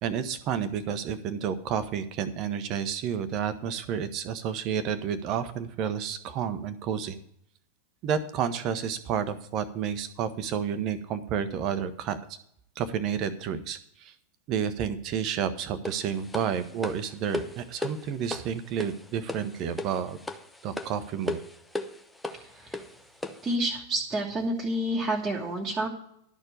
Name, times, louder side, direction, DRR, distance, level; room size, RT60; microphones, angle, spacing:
voice 1, 0.0-7.2 8.0-12.4 12.8-14.1 14.5-20.2 20.6-21.4, right 8 dB, 40° right, 12 dB, 0.9 m, -30 dB
sound 1, 15.9-23.5, left 2 dB, 5° left, 0.7 m, -37 dB
voice 2, 22.3-22.8 23.4-25.9, right 1 dB, 15° right, -3 dB, 1.4 m, -29 dB
11.5 x 4.5 x 8.1 m, 0.71 s
figure-of-eight pair, 90°, 0 cm